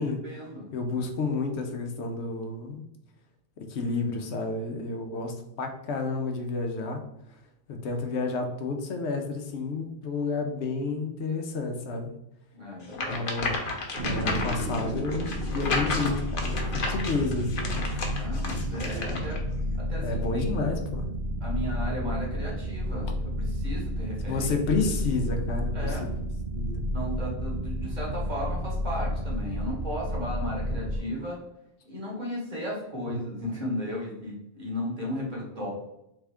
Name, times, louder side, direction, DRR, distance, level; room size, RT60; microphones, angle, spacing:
voice 1, 0.0-0.7 12.5-13.2 18.2-19.4 19.8-20.5 21.4-24.5 25.7-26.1 26.9-31.4 31.8-35.7, left 1 dB, 45° right, -3 dB, 1.5 m, -35 dB
voice 2, 0.7-2.9 3.7-7.0 7.7-12.1 13.0-13.6 14.0-18.2 18.7-19.2 20.0-21.1 24.3-26.0 26.5-26.8 33.1-33.2, left 3 dB, 80° left, 4 dB, 1.0 m, -30 dB
sound 1, 12.9-19.4, left 3 dB, 55° left, 0.9 m, -32 dB
sound 2, 13.9-31.0, equal, 75° right, 1.0 m, -31 dB
3.6 x 3.5 x 3.4 m, 0.83 s
omnidirectional pair, 1.1 m